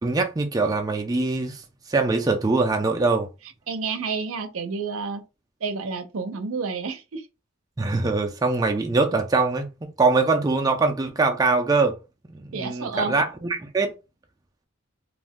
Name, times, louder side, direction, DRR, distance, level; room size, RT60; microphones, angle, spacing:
voice 1, 0.0-1.6 1.9-3.3 7.8-12.0 12.3-13.9, right 3 dB, 20° right, 0.3 m, -23 dB
voice 2, 3.7-5.2 5.6-7.2 12.5-13.1, right 4 dB, 80° right, 0.5 m, -29 dB
2.5 x 2.1 x 3.5 m
head